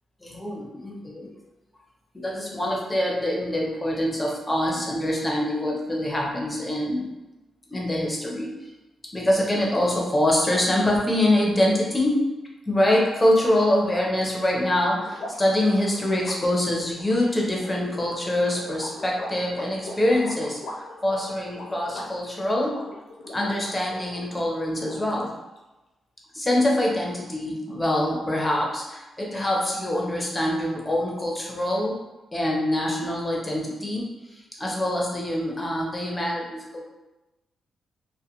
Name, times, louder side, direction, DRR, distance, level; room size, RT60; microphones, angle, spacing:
voice 1, 0.2-1.3 2.1-7.1 7.7-8.5 9.1-12.2 12.7-22.8 23.3-25.3 26.3-32.0 32.3-36.8, left 1 dB, 15° left, -3 dB, 0.7 m, -24 dB
sound 1, 12.8-24.4 24.7-25.6, left 1 dB, 80° left, 0.5 m, -41 dB
2.4 x 2.2 x 2.9 m, 1.0 s
cardioid pair, 75°, 0 cm